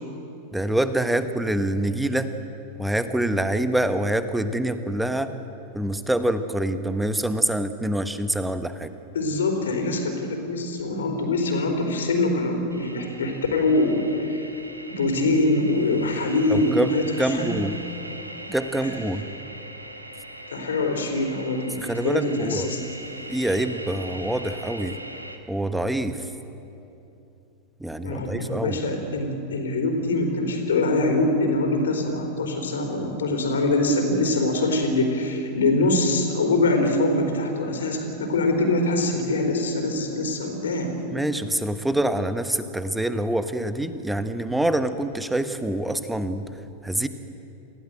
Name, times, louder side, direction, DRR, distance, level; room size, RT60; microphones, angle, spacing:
voice 1, 0.5-2.3 2.8-5.3 5.7-8.9 16.5-17.8 18.5-19.2 21.8-22.7 23.3-25.0 25.5-26.3 27.8-28.8 41.1-46.4 46.8-47.1, right 1 dB, 5° right, 10 dB, 1.2 m, -25 dB
voice 2, 9.1-14.4 14.9-17.5 18.8-18.9 20.5-22.8 28.0-40.9, left 2 dB, 65° left, 4 dB, 4.0 m, -24 dB
sound 1, 12.7-25.4, right 1 dB, 85° right, 1.8 m, -40 dB
28.0 x 16.5 x 7.8 m, 2.8 s
figure-of-eight pair, 90°, 0 cm